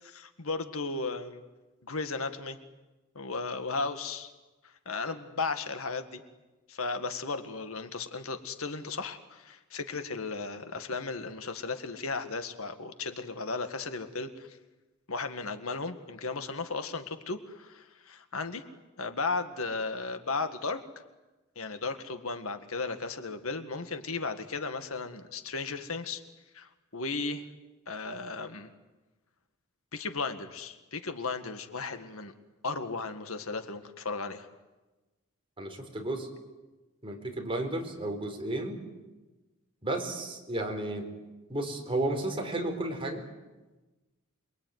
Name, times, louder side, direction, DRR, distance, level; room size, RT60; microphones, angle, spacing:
voice 1, 0.0-1.4 1.8-2.6 3.2-4.3 4.6-6.2 6.7-14.6 15.1-18.6 19.0-20.8 21.6-26.2 26.5-27.4 27.9-28.7 29.9-32.3 32.6-34.5, left 4 dB, 70° left, 8 dB, 1.9 m, -35 dB
voice 2, 35.6-36.3 37.0-38.8 39.8-41.1 41.5-43.2, right 1 dB, 25° right, 3 dB, 4.4 m, -33 dB
28.0 x 22.5 x 9.5 m, 1.2 s
head